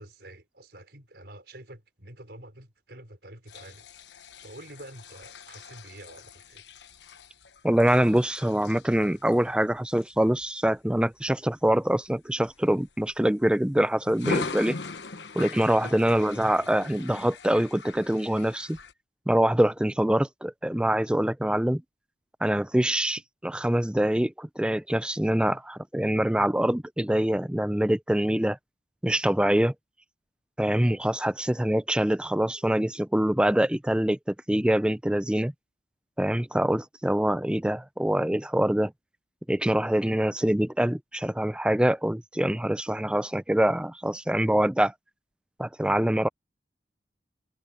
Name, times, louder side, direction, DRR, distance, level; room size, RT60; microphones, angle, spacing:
voice 1, 0.0-3.9 4.4-6.7, right 1 dB, 65° right, 4.7 m, -47 dB
sound 1, 3.5-11.3 11.8-12.1 12.4-13.5 14.1-18.9, left 4 dB, 80° left, 1.1 m, -40 dB
voice 2, 7.6-14.8 15.3-18.8 19.3-21.8 22.4-28.6 29.0-29.7 30.6-35.5 36.2-38.9 39.5-44.9 45.6-46.3, right 1 dB, 5° right, 0.4 m, -24 dB
head